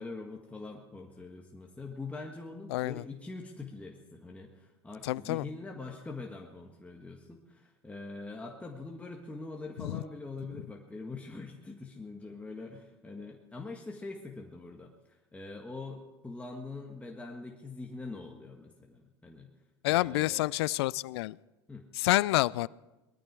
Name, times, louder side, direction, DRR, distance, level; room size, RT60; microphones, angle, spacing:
voice 1, 0.0-19.5 19.8-20.5 21.7-21.9, left 3 dB, 10° left, 0 dB, 1.7 m, -43 dB
voice 2, 2.7-3.0 5.0-5.4 9.8-10.0 19.8-21.4 21.9-22.7, left 18 dB, 70° left, 23 dB, 0.4 m, -28 dB
20.0 x 13.0 x 4.7 m, 1.1 s
hypercardioid pair, 85°, 14 cm